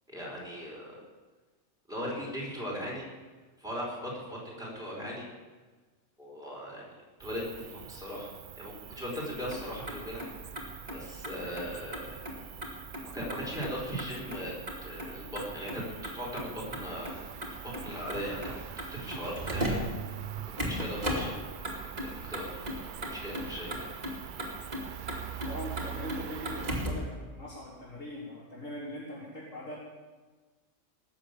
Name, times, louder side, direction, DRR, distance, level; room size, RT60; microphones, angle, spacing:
voice 1, 0.1-0.9 1.9-3.1 3.6-5.3 6.2-6.9 7.2-8.3 8.6-12.1 13.1-14.5 14.8-17.2 17.6-19.8 20.4-21.4 22.3-22.8 23.1-23.9, equal, 5° right, -5 dB, 5.2 m, -38 dB
Cricket, 7.2-26.9, right 10 dB, 60° right, 0.5 m, -44 dB
Motor vehicle (road), 9.3-27.1, equal, 35° right, 2.8 m, -38 dB
voice 2, 25.5-29.8, equal, 80° left, -7 dB, 3.7 m, -41 dB
19.0 x 7.2 x 8.6 m, 1.3 s
omnidirectional pair, 1.3 m